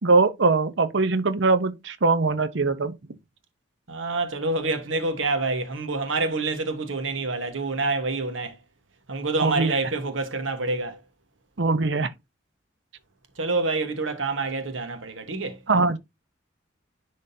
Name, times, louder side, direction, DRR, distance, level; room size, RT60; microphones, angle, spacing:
voice 1, 0.0-3.0 9.4-9.8 11.6-12.1 15.7-16.0, right 3 dB, 65° right, 0.8 m, -22 dB
voice 2, 3.9-8.6 9.1-11.0 13.4-15.6, right 3 dB, 85° right, 1.3 m, -27 dB
10.5 x 3.8 x 2.7 m
head